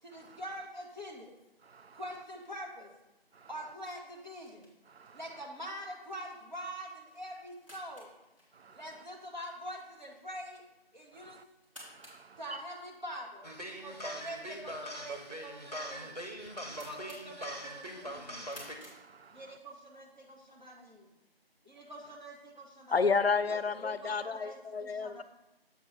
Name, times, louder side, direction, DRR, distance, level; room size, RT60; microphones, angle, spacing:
voice 1, 0.0-1.3 1.9-2.9 3.5-4.7 5.1-8.2 8.7-10.6 10.9-11.4 12.4-13.5 13.8-16.2 16.7-18.7 19.3-21.1 21.6-23.0 23.8-25.2, equal, 50° right, -1 dB, 1.4 m, -45 dB
voice 2, 1.6-2.0 3.3-3.5 4.9-5.2 8.5-9.0 11.1-11.4 11.8-12.6 16.5-16.9 18.5-19.6, right 5 dB, 80° right, 13 dB, 0.5 m, -55 dB
sound 1, 4.1-19.8, equal, 30° right, 1.8 m, -58 dB
sound 2, 13.4-18.8, equal, 40° left, 0.7 m, -42 dB
voice 3, 22.9-25.2, left 5 dB, 80° left, 14 dB, 0.5 m, -30 dB
7.2 x 3.2 x 5.9 m, 1.0 s
figure-of-eight pair, 180°, 30 cm